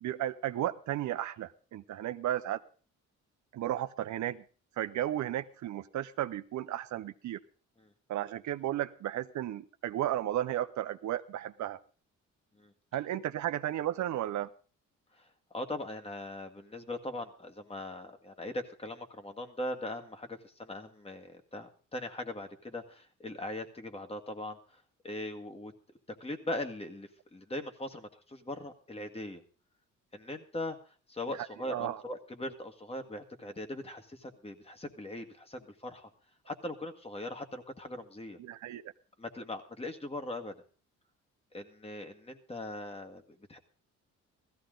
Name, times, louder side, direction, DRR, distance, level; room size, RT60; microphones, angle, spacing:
voice 1, 0.0-2.6 3.5-4.4 4.8-7.4 8.1-11.8 12.9-14.5 31.4-32.0 38.4-38.9, right 12 dB, 70° right, 11 dB, 0.8 m, -34 dB
voice 2, 15.1-25.7 26.2-29.4 30.1-30.8 31.1-36.1 36.5-38.4 39.2-40.5 41.5-43.2 43.5-43.6, left 1 dB, 20° left, 5 dB, 1.8 m, -40 dB
16.0 x 14.5 x 3.9 m, 0.39 s
cardioid pair, 90°, 30 cm